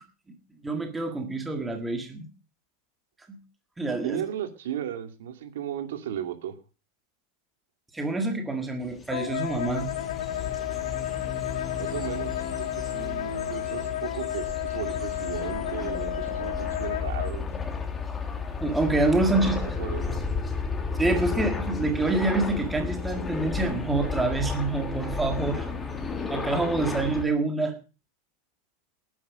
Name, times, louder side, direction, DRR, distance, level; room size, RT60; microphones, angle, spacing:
voice 1, 0.6-2.3 3.3-3.4 3.8-4.2 7.9-9.9 18.6-19.6 21.0-25.7 26.3-27.8, right 2 dB, 5° right, 5 dB, 1.7 m, -26 dB
voice 2, 4.0-6.6 11.7-17.4 19.4-20.2, right 10 dB, 80° right, 7 dB, 2.6 m, -35 dB
sound 1, 8.9-27.2, left 4 dB, 10° left, 1.8 m, -33 dB
Wind instrument woodwind instrument, 9.1-17.3, left 13 dB, 85° left, 2.0 m, -32 dB
sound 2, 9.4-19.9, left 6 dB, 35° left, 3.3 m, -42 dB
19.0 x 9.4 x 5.1 m, 0.33 s
supercardioid pair, 180°, 0 cm